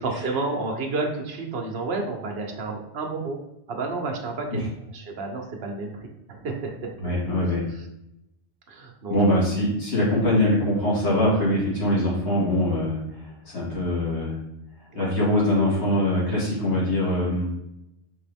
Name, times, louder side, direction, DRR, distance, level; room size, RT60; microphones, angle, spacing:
voice 1, 0.0-3.4 3.7-4.6 4.9-6.0 6.3-6.9 8.7-9.2 14.9-15.1, right 3 dB, 60° right, 2 dB, 1.0 m, -30 dB
voice 2, 7.0-7.6 9.1-13.0 13.5-14.3 14.9-17.5, left 1 dB, 70° left, -7 dB, 2.2 m, -23 dB
5.2 x 3.0 x 3.4 m, 0.84 s
omnidirectional pair, 1.2 m